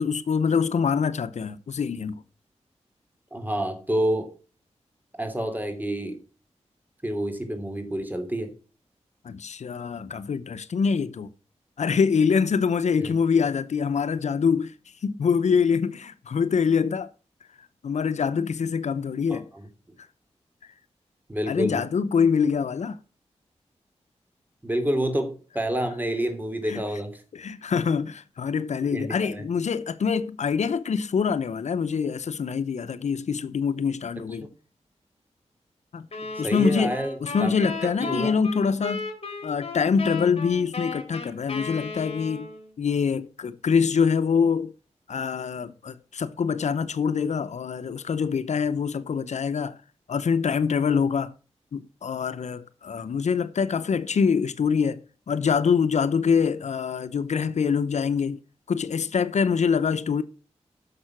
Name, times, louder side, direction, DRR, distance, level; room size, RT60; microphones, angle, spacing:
voice 1, 0.0-2.2 9.2-11.3 11.8-14.7 15.0-17.1 17.8-19.5 21.5-23.0 26.6-26.8 27.3-34.5 35.9-36.1 36.4-39.1 39.4-42.5 42.8-44.7 45.1-49.8 50.1-51.3 51.7-55.0 55.3-58.4 58.7-60.2, left 6 dB, 80° left, 0.8 m, -25 dB
voice 2, 3.3-4.3 5.2-6.2 7.0-8.5 13.0-13.1 19.3-19.7 21.3-21.8 24.6-27.1 28.9-29.4 36.4-37.7 38.0-38.4, right 1 dB, 15° right, 3.1 m, -28 dB
sound 1, 36.1-42.7, left 4 dB, 55° left, 4.0 m, -35 dB
11.0 x 6.7 x 6.0 m
wide cardioid pair, 80°, 12 cm